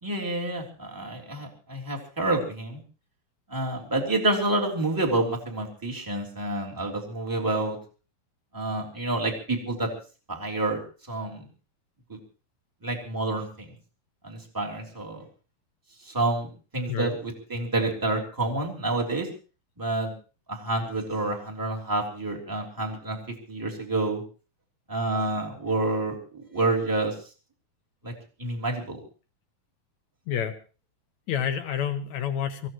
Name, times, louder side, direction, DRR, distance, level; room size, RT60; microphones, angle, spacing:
voice 1, 0.0-2.8 3.5-7.8 8.5-9.9 10.3-10.8 11.1-11.4 12.1-12.2 12.8-13.7 14.2-15.2 16.0-19.3 19.8-20.1 20.5-24.2 24.9-27.1 28.0-28.1 28.4-29.0, right 2 dB, 5° right, 0 dB, 2.7 m, -28 dB
voice 2, 31.3-32.7, left 9 dB, 65° left, 7 dB, 2.0 m, -29 dB
25.0 x 15.5 x 3.1 m, 0.36 s
omnidirectional pair, 4.3 m